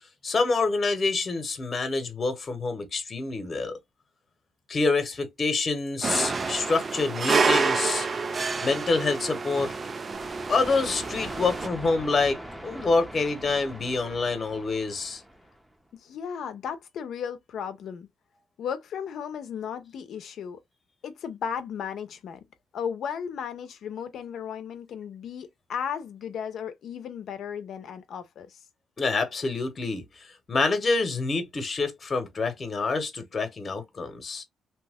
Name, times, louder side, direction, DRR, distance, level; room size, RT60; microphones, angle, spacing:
voice 1, 0.2-3.8 4.7-8.1 8.6-9.7 10.5-15.2 29.0-30.0 30.5-34.4, left 3 dB, 35° left, 1.0 m, -27 dB
sound 1, 6.0-11.7, right 4 dB, 35° right, 0.4 m, -28 dB
sound 2, 10.1-15.7, right 1 dB, 5° right, 0.7 m, -42 dB
voice 2, 16.0-18.1 18.6-20.6 21.0-22.4 22.7-28.6, left 7 dB, 70° left, 0.7 m, -35 dB
2.9 x 2.1 x 3.5 m
cardioid pair, 90°, 0 cm